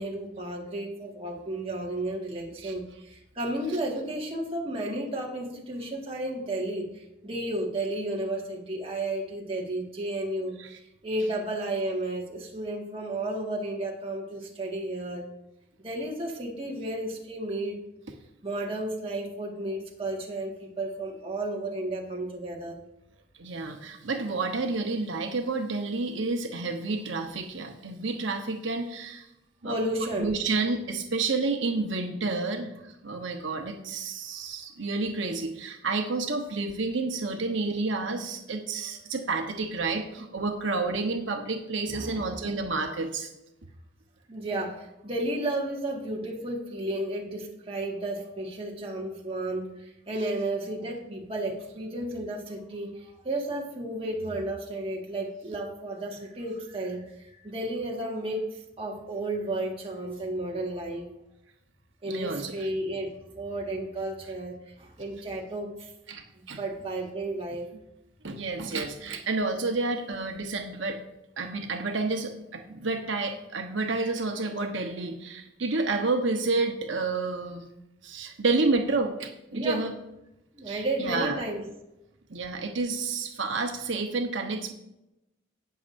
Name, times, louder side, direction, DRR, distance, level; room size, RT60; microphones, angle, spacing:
voice 1, 0.0-10.6 11.0-15.3 15.8-17.8 18.4-22.8 29.6-30.4 38.8-38.9 41.9-42.3 44.3-61.1 62.0-65.9 66.3-67.7 79.5-79.9 80.5-81.7, right 1 dB, 30° right, -2 dB, 1.8 m, -33 dB
voice 2, 23.4-29.3 29.6-29.8 30.2-43.3 62.0-62.5 66.1-66.6 68.2-71.0 71.4-77.7 78.0-79.9 80.7-81.4 82.3-84.7, right 3 dB, 90° right, 4 dB, 1.0 m, -30 dB
18.5 x 6.7 x 2.6 m, 0.89 s
head